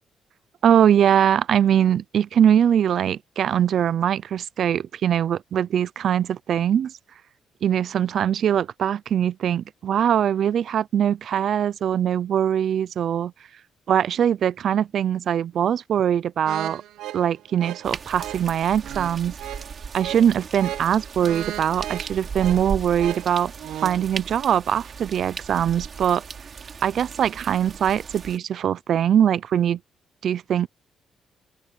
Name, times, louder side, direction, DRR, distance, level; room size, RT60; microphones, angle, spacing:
voice 1, 0.6-6.9 7.6-13.3 13.9-16.8 17.1-19.3 19.9-23.5 23.8-26.2 26.8-29.8 30.2-30.7, right 9 dB, 65° right, 0.6 m, -22 dB
sound 1, 16.4-24.1, right 13 dB, 85° right, 1.3 m, -36 dB
sound 2, 17.8-28.4, right 6 dB, 45° right, 4.2 m, -37 dB
open air
cardioid pair, 90°, 0 cm